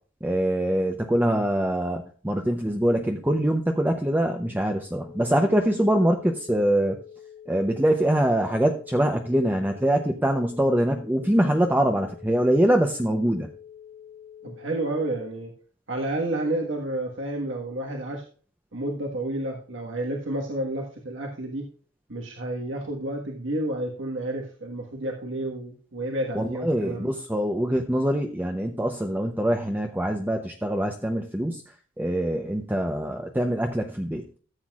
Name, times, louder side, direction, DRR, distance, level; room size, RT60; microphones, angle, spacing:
voice 1, 0.2-7.0 7.5-13.5 26.3-34.2, right 1 dB, 10° right, 3 dB, 0.7 m, -24 dB
sound 1, 4.9-15.2, left 9 dB, 85° left, 2.2 m, -47 dB
voice 2, 14.4-15.5 15.9-18.2 18.7-21.7 22.1-27.2, right 1 dB, 70° right, 0 dB, 1.5 m, -30 dB
14.0 x 7.9 x 2.4 m, 0.41 s
head